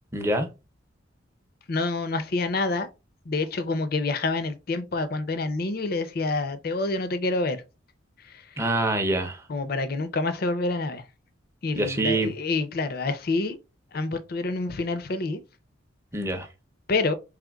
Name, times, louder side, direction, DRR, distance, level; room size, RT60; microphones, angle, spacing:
voice 1, 0.1-0.5 8.6-9.4 11.8-12.3 16.1-16.5, right 1 dB, 15° right, 0.6 m, -25 dB
voice 2, 1.7-2.9 3.3-7.6 8.2-8.4 9.5-11.0 11.6-13.6 13.9-15.4 16.9-17.1, left 3 dB, 50° left, 0.5 m, -27 dB
4.9 x 3.3 x 2.3 m
head